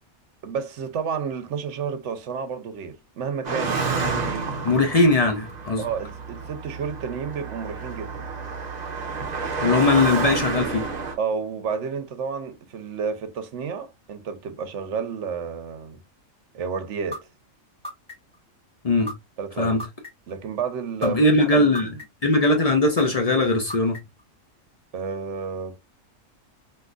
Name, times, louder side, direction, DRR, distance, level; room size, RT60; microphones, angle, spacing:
voice 1, 0.4-3.9 5.8-8.2 11.2-16.0 16.5-17.2 19.4-19.8 20.3-21.7 24.9-25.8, right 6 dB, 65° right, 0.9 m, -31 dB
Car passing by, 3.4-11.2, right 4 dB, 45° right, 0.6 m, -29 dB
voice 2, 4.6-5.8 9.6-10.8 18.8-19.1 19.6-19.8 21.0-21.9 22.2-24.0, left 2 dB, 55° left, 0.4 m, -20 dB
sound 1, 17.1-17.2 17.8-18.4 19.1-19.2 19.8-20.3 21.0-21.1 21.8-22.3 23.0-23.1 23.7-24.2, left 1 dB, 5° left, 1.9 m, -34 dB
3.7 x 2.7 x 2.3 m
omnidirectional pair, 1.4 m